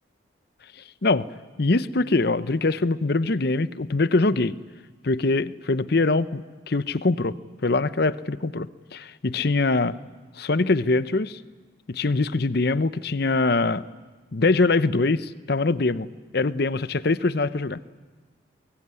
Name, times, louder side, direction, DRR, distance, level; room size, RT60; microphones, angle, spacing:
voice 1, 1.6-4.6 5.0-6.4 6.7-7.4 7.6-10.0 10.4-11.4 11.9-13.8 14.3-16.1 16.3-17.8, left 3 dB, 55° left, 16 dB, 0.7 m, -23 dB
23.5 x 22.5 x 9.7 m, 1.3 s
head